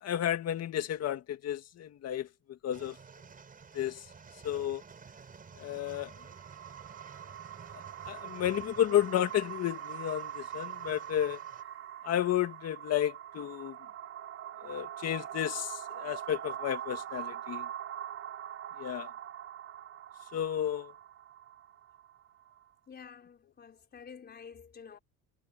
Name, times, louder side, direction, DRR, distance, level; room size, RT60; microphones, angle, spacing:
voice 1, 0.0-3.0 3.7-4.0 4.4-4.8 5.6-6.1 8.0-11.4 12.0-13.8 14.6-17.7 18.8-19.1 20.3-20.9, left 11 dB, 45° left, 1.9 m, -32 dB
sound 1, 2.7-11.6, right 5 dB, 25° right, 5.7 m, -53 dB
sound 2, 5.5-22.7, right 10 dB, 40° right, 3.6 m, -43 dB
voice 2, 22.9-25.0, left 6 dB, 30° left, 4.6 m, -50 dB
cardioid pair, 140°, 34 cm